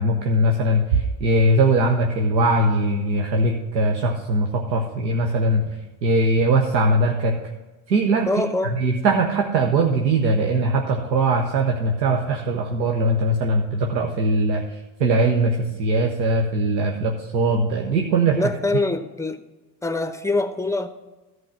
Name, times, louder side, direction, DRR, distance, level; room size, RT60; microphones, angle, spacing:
voice 1, 0.0-5.6 6.0-7.3 7.9-8.3 8.6-18.5, right 2 dB, 90° right, 2 dB, 0.9 m, -21 dB
voice 2, 8.2-8.7 18.3-19.4 19.8-20.9, left 2 dB, 5° left, 10 dB, 0.8 m, -24 dB
13.5 x 4.8 x 6.1 m, 1.1 s
hypercardioid pair, 55°, 50 cm